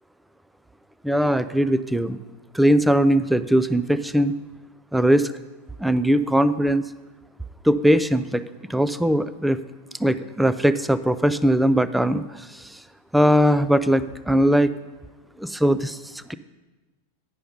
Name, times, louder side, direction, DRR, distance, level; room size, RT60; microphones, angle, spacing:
voice 1, 1.0-2.2 2.5-4.3 4.9-5.3 5.8-6.9 7.6-8.4 8.7-9.6 10.0-12.8 13.1-14.7 15.4-16.3, equal, 5° right, 13 dB, 0.4 m, -20 dB
9.6 x 5.6 x 5.4 m, 1.2 s
figure-of-eight pair, 90°, 0 cm